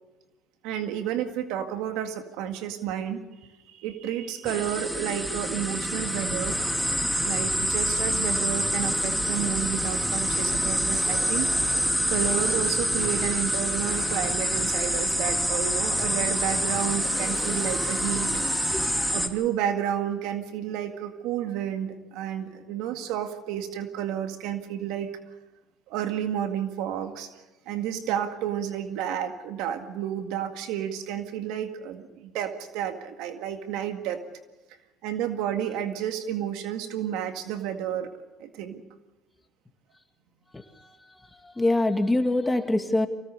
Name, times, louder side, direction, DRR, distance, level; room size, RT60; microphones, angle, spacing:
voice 1, 0.6-3.2 3.7-6.6 7.2-11.5 12.1-18.3 19.1-25.1 25.9-27.3 27.7-34.2 35.0-38.1 38.4-38.8, right 10 dB, 80° right, 6 dB, 2.0 m, -31 dB
sound 1, 4.5-19.3, equal, ahead, 2.6 m, -27 dB
sound 2, 5.4-19.1, right 2 dB, 45° right, 7.0 m, -40 dB
voice 2, 40.5-43.1, left 2 dB, 15° left, 6 dB, 2.5 m, -25 dB
25.0 x 18.0 x 6.8 m, 1.1 s
supercardioid pair, 85°, 0 cm